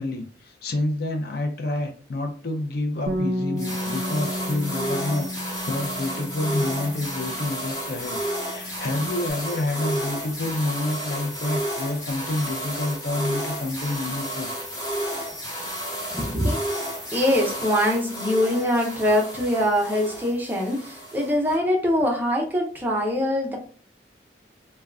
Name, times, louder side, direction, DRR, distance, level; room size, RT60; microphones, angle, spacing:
voice 1, 0.0-14.5 15.0-15.3, left 2 dB, 55° left, 3 dB, 0.5 m, -28 dB
Bass guitar, 3.1-7.8 8.0-9.3, equal, 70° right, 0.5 m, -33 dB
sound 1, 3.6-21.6, equal, 20° left, 1.4 m, -32 dB
voice 2, 16.1-16.6 17.1-23.6, left 1 dB, 10° right, -1 dB, 0.5 m, -23 dB
3.5 x 2.2 x 2.2 m, 0.41 s
head